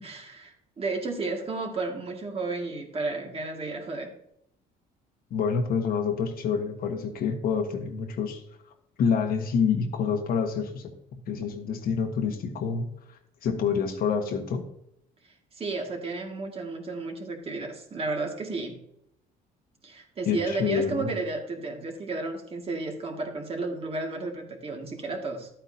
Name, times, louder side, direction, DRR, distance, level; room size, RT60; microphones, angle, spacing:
voice 1, 0.0-4.1 15.5-18.8 19.8-25.5, right 3 dB, 35° right, 2 dB, 2.0 m, -32 dB
voice 2, 5.3-8.4 9.0-10.9 11.3-12.9 13.4-14.6 20.3-21.1, left 6 dB, 60° left, 5 dB, 1.3 m, -27 dB
12.0 x 8.7 x 2.7 m, 0.77 s
cardioid pair, 110°, 17 cm